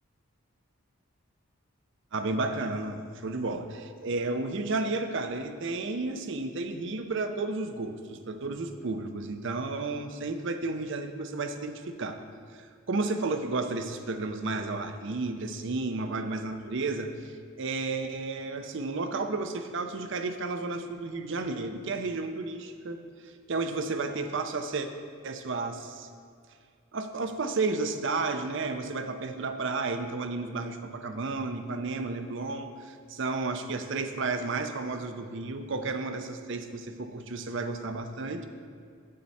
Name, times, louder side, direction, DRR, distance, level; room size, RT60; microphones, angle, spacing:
voice 1, 2.1-12.2 12.9-24.9 25.2-26.1 26.9-38.5, right 3 dB, 60° right, 8 dB, 0.6 m, -32 dB
8.8 x 7.5 x 4.2 m, 2.2 s
head